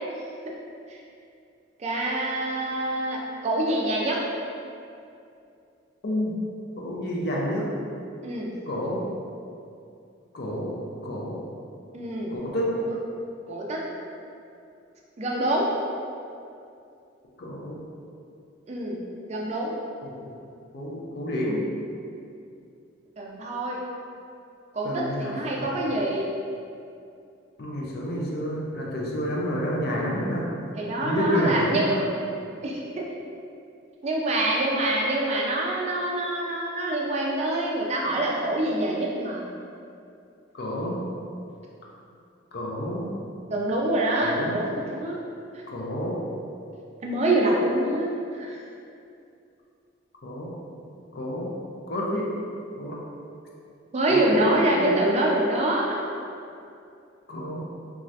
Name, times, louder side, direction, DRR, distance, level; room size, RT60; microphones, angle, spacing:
voice 1, 1.8-4.2 8.2-8.6 11.9-12.4 12.8-13.0 13.5-13.8 15.2-15.7 18.7-19.0 19.3-19.7 23.2-23.8 24.7-26.3 30.7-31.9 32.6-33.0 34.0-39.4 43.5-45.2 47.0-48.6 53.9-56.0, right 1 dB, 35° right, -2 dB, 0.3 m, -25 dB
voice 2, 6.0-6.3 6.8-7.7 8.7-9.0 10.3-10.7 11.0-11.4 12.3-12.7 17.4-17.8 20.0-20.2 20.7-21.6 24.8-25.8 27.6-30.5 31.0-32.0 40.6-41.0 42.5-43.1 44.2-44.6 45.7-46.2 50.2-50.5 51.2-51.5 51.9-52.3 52.8-53.0 54.1-55.0 57.3-57.6, equal, 50° left, -4 dB, 0.4 m, -29 dB
2.6 x 2.4 x 3.1 m, 2.5 s
head